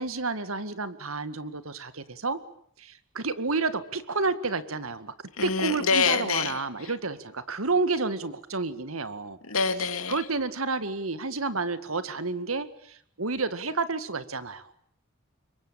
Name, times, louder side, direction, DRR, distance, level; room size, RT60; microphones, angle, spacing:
voice 1, 0.0-2.4 2.8-5.1 5.4-9.4 10.1-14.7, right 3 dB, 85° right, 13 dB, 2.0 m, -30 dB
voice 2, 5.4-6.9 9.4-10.3, left 5 dB, 85° left, 10 dB, 2.4 m, -26 dB
26.5 x 23.0 x 8.9 m, 0.64 s
head